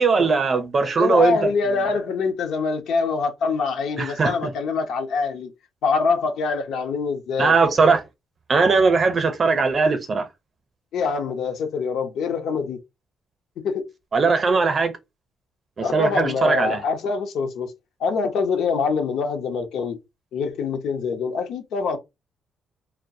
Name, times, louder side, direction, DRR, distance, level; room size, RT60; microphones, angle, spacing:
voice 1, 0.0-1.5 4.0-4.3 7.4-8.0 8.5-10.3 14.1-14.9 15.8-16.8, right 4 dB, 40° right, 0.6 m, -19 dB
voice 2, 1.0-5.5 5.8-7.6 10.9-12.8 13.6-13.9 15.8-17.7 18.0-20.0 20.3-22.0, left 5 dB, 80° left, 0.6 m, -24 dB
2.3 x 2.1 x 2.6 m
cardioid pair, 90°, 0 cm